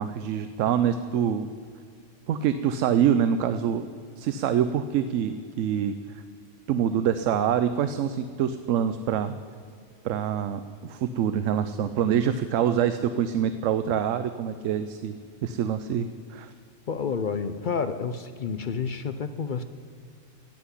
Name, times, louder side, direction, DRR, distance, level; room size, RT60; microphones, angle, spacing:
voice 1, 0.0-1.5 2.3-3.9 4.2-6.0 6.7-9.3 10.0-15.2 15.4-16.5, right 9 dB, 85° right, 11 dB, 0.9 m, -25 dB
voice 2, 16.9-19.6, left 5 dB, 55° left, 11 dB, 0.6 m, -29 dB
16.0 x 5.9 x 9.8 m, 2.3 s
omnidirectional pair, 1.3 m